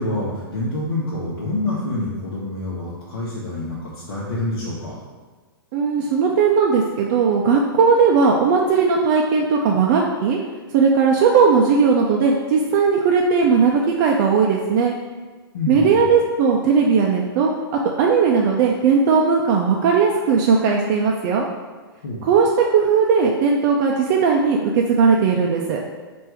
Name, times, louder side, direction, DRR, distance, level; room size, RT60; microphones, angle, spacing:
voice 1, 0.0-5.0 15.5-16.1 22.0-22.3, left 2 dB, 70° left, -8 dB, 1.0 m, -27 dB
voice 2, 5.7-10.4 10.7-14.9 15.7-17.5 18.0-21.5 22.2-25.8, right 5 dB, 45° right, -1 dB, 0.4 m, -17 dB
3.3 x 2.6 x 4.4 m, 1.4 s
hypercardioid pair, 115°, 13 cm